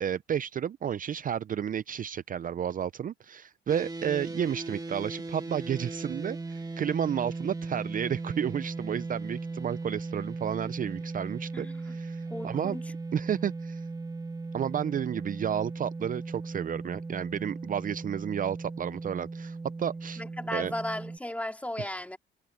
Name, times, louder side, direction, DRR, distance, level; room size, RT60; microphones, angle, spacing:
voice 1, 0.0-12.8 13.1-13.9 14.5-20.2 20.5-20.7 21.8-21.9, right 9 dB, 45° right, 0.5 m, -32 dB
sound 1, 3.7-21.2, right 3 dB, 20° right, 2.5 m, -38 dB
voice 2, 11.5-12.0 12.3-12.8 20.2-22.2, left 1 dB, 5° left, 2.5 m, -35 dB
cardioid pair, 90°, 20 cm